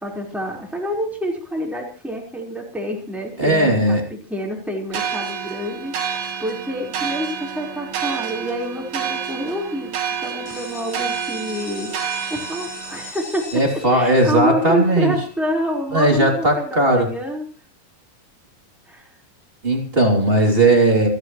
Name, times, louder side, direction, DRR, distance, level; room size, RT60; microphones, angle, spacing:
voice 1, 0.0-9.9 10.2-11.9 12.3-13.5 13.9-17.5 18.9-19.1, equal, ahead, -1 dB, 4.0 m, -27 dB
voice 2, 3.4-4.0 13.5-15.1 15.9-17.1 19.6-21.1, right 1 dB, 15° right, 2 dB, 2.8 m, -17 dB
sound 1, 4.9-13.1, right 8 dB, 85° right, 3.8 m, -29 dB
sound 2, 10.5-16.1, left 3 dB, 50° left, 9.4 m, -40 dB
28.5 x 11.5 x 3.2 m, 0.37 s
omnidirectional pair, 4.3 m